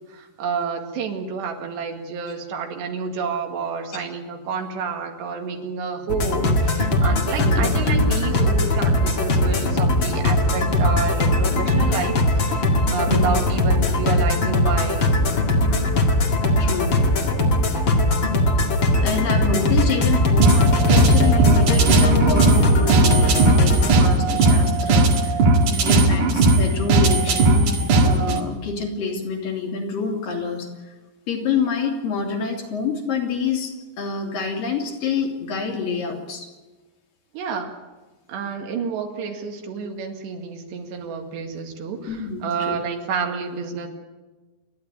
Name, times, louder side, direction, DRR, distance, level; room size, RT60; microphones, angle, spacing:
voice 1, 0.1-15.1 25.7-26.1 37.3-37.8 38.3-43.9, right 5 dB, 75° right, 4 dB, 4.2 m, -29 dB
sound 1, 6.1-24.0, left 1 dB, 40° left, 2.0 m, -20 dB
voice 2, 16.6-17.0 19.0-25.5 25.9-27.7 28.0-30.9 31.3-36.5 42.1-42.8, left 5 dB, 55° left, 1 dB, 4.2 m, -27 dB
sound 2, 20.4-28.4, right 2 dB, 55° right, 2.8 m, -17 dB
29.0 x 11.5 x 9.6 m, 1.2 s
omnidirectional pair, 5.0 m